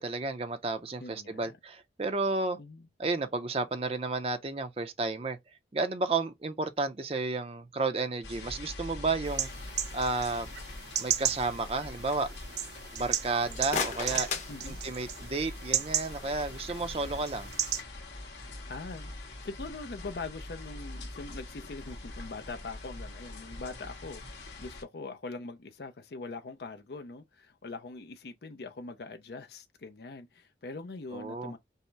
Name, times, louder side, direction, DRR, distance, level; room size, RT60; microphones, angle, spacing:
voice 1, 0.0-2.6 3.0-5.4 5.7-9.5 9.9-10.5 11.0-12.3 12.9-14.3 14.7-17.5 31.1-31.5, right 3 dB, 35° right, 0.5 m, -32 dB
voice 2, 1.0-1.5 2.6-2.9 14.5-14.8 18.4-31.6, left 3 dB, 65° left, 0.5 m, -42 dB
sound 1, 8.2-24.8, left 2 dB, 80° left, 1.6 m, -44 dB
sound 2, 9.3-17.8, right 10 dB, 75° right, 0.8 m, -35 dB
sound 3, 13.5-15.4, left 5 dB, 40° left, 0.9 m, -36 dB
5.4 x 2.0 x 4.5 m
head